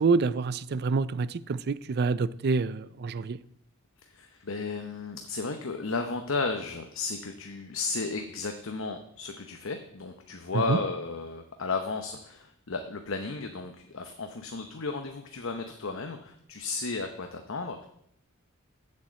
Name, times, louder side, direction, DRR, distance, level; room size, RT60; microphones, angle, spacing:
voice 1, 0.0-3.4 10.7-10.8, right 4 dB, 50° right, 0.4 m, -27 dB
voice 2, 4.1-17.9, left 3 dB, 65° left, 0.9 m, -34 dB
7.7 x 7.2 x 7.7 m
head